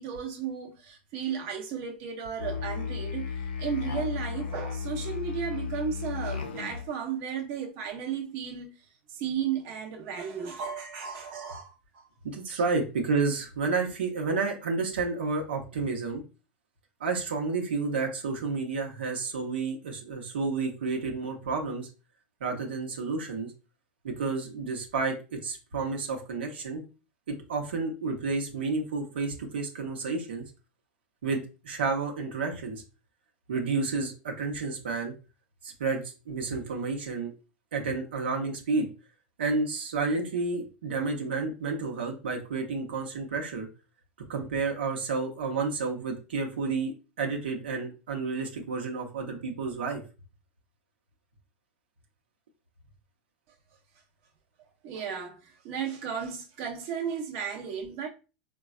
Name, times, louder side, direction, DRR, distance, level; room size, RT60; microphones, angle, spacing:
voice 1, 0.0-8.7 9.1-12.1 12.5-12.6 54.8-58.1, right 7 dB, 55° right, 0.7 m, -34 dB
Musical instrument, 2.4-6.9, left 6 dB, 80° left, 0.5 m, -34 dB
voice 2, 12.2-16.2 17.0-21.9 22.4-23.5 24.0-26.8 27.3-30.5 31.2-32.8 33.5-35.1 35.6-36.0 36.3-37.3 37.7-38.9 39.4-43.7 44.3-50.0, right 4 dB, 90° right, 0.8 m, -30 dB
4.0 x 2.2 x 2.3 m
hypercardioid pair, 110°, 5 cm